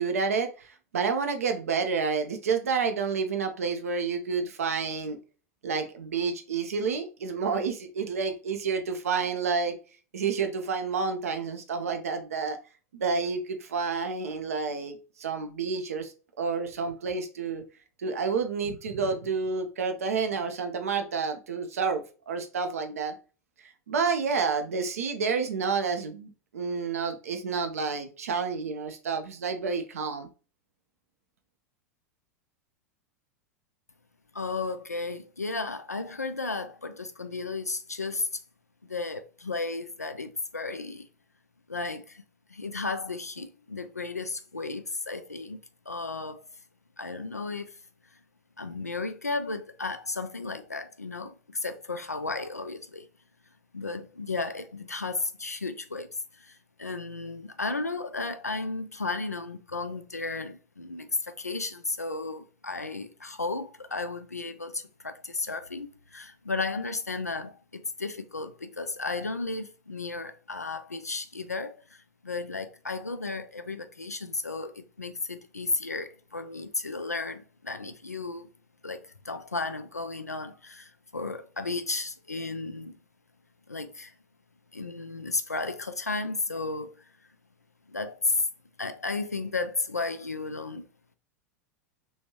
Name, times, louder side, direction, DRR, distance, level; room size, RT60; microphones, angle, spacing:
voice 1, 0.0-5.2 5.6-9.7 10.1-12.6 12.9-17.6 18.0-23.1 23.6-30.3, right 5 dB, 65° right, 0.7 m, -29 dB
voice 2, 34.3-38.4 38.8-41.1 41.7-42.2 42.5-45.6 45.9-46.4 47.0-47.8 48.6-53.1 53.7-78.5 78.8-83.0 83.7-84.1 84.7-87.1 87.9-88.5 88.8-90.8, left 3 dB, 85° left, 0.4 m, -34 dB
3.4 x 3.1 x 2.8 m
figure-of-eight pair, 85°, 8 cm